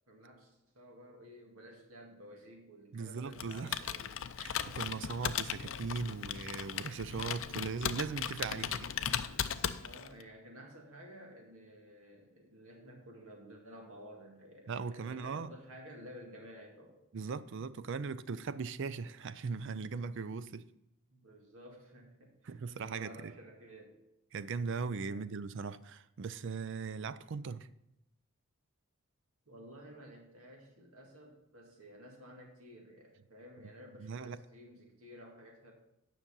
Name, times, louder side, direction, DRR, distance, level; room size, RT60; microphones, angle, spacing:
voice 1, 0.1-4.2 9.8-17.0 21.1-22.3 22.7-24.0 25.0-25.2 29.5-35.7, equal, 70° right, 2.0 m, -53 dB
voice 2, 2.9-3.9 4.4-8.9 14.7-15.5 17.1-20.7 22.4-23.3 24.3-27.7 34.0-34.4, right 5 dB, 55° right, 0.4 m, -39 dB
Computer keyboard, 3.3-10.2, left 9 dB, 60° left, 0.5 m, -37 dB
9.9 x 6.0 x 5.3 m
head